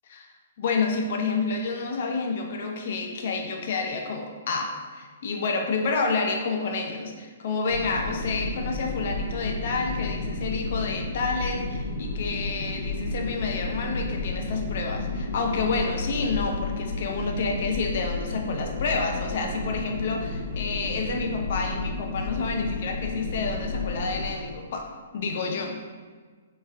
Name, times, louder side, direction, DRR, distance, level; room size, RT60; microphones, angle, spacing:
voice 1, 0.6-24.9 25.1-25.8, left 4 dB, 50° left, 2 dB, 0.4 m, -29 dB
sound 1, 7.7-24.3, left 3 dB, 90° left, 0.7 m, -32 dB
3.2 x 3.1 x 2.2 m, 1.5 s
figure-of-eight pair, 120°, 0 cm